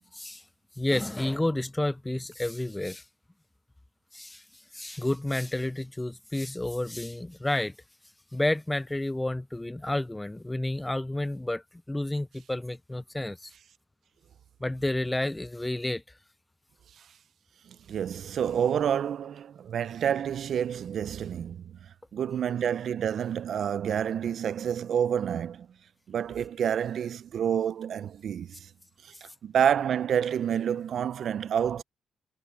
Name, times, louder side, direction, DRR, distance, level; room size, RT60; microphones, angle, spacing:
voice 1, 0.8-3.0 4.1-4.4 4.7-7.7 8.3-11.6 11.9-13.5 14.6-16.0, left 1 dB, 10° left, 0.4 m, -30 dB
voice 2, 17.7-21.8 22.1-25.7 26.1-28.7 29.0-31.8, right 8 dB, 60° right, 0.6 m, -28 dB
cardioid pair, 90°, 0 cm